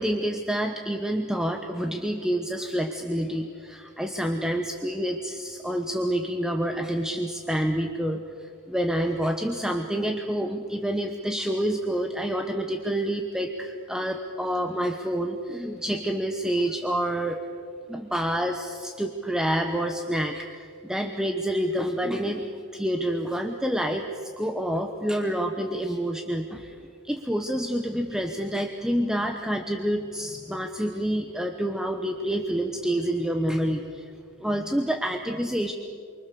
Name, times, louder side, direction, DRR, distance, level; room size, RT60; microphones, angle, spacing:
voice 1, 0.0-17.4 17.9-26.8 27.0-34.1 34.4-35.7, equal, 5° right, 4 dB, 1.0 m, -28 dB
29.0 x 24.0 x 6.9 m, 2.3 s
head